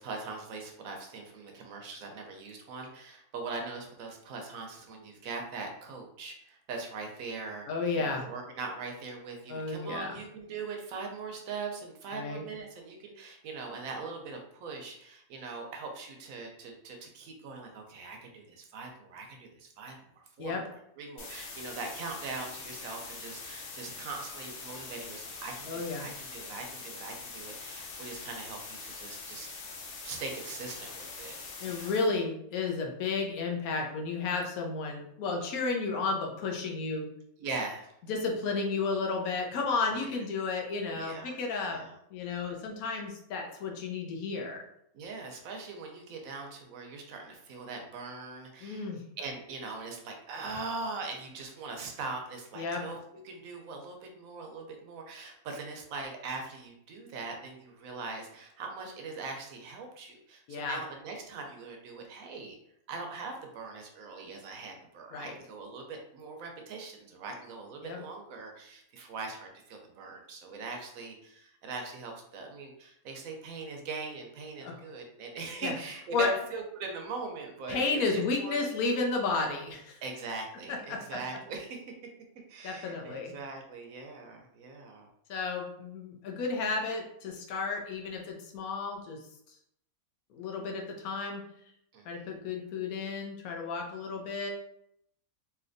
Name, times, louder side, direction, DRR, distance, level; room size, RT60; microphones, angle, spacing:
voice 1, 0.0-29.5 30.0-31.3 31.6-32.0 37.4-37.9 39.9-40.1 40.9-42.0 44.9-48.9 49.2-53.0 53.2-62.5 62.9-78.6 80.0-82.0 82.5-85.1 91.9-92.3, right 3 dB, 70° right, 2 dB, 1.0 m, -41 dB
voice 2, 7.7-8.3 9.5-10.2 12.1-12.4 20.4-20.6 25.7-26.1 31.6-37.1 38.1-41.8 42.1-44.6 48.6-49.0 52.6-52.8 60.5-60.8 65.1-65.3 67.8-68.0 74.6-74.8 75.6-75.7 76.1-76.3 77.7-80.0 80.7-81.0 82.6-83.3 85.3-89.2 90.3-91.4 92.1-94.5, left 4 dB, 75° left, 2 dB, 1.1 m, -32 dB
sound 1, 21.2-32.1, left 4 dB, 60° left, 0.6 m, -43 dB
3.2 x 2.8 x 2.5 m, 0.74 s
omnidirectional pair, 1.6 m